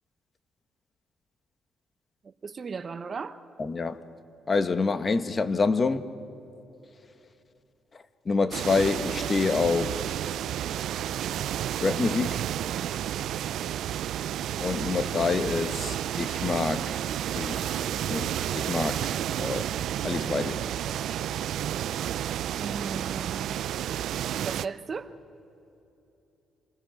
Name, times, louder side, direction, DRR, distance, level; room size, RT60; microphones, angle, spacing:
voice 1, 2.2-3.4 22.6-23.6 24.4-25.1, right 5 dB, 40° right, 0.8 m, -36 dB
voice 2, 3.6-4.0 4.5-6.1 8.3-10.0 11.8-12.4 14.6-17.0 17.3-17.7 18.1-19.1 19.4-19.6 20.0-20.6, left 4 dB, 35° left, 1.0 m, -27 dB
sound 1, 8.5-24.7, right 11 dB, 75° right, 0.4 m, -31 dB
27.5 x 19.5 x 5.9 m
cardioid pair, 90°, 0 cm